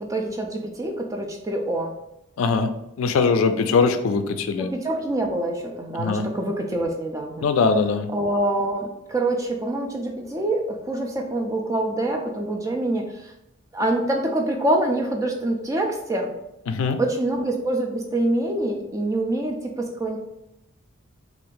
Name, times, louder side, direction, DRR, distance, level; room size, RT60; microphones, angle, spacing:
voice 1, 0.0-1.9 4.6-7.5 8.1-13.3 13.7-16.3 17.0-20.2, right 1 dB, 15° right, 1 dB, 0.3 m, -25 dB
voice 2, 2.4-2.7 3.0-4.7 6.0-6.3 7.4-8.1 16.7-17.0, left 4 dB, 80° left, 9 dB, 0.3 m, -21 dB
2.6 x 2.4 x 3.7 m, 0.86 s
head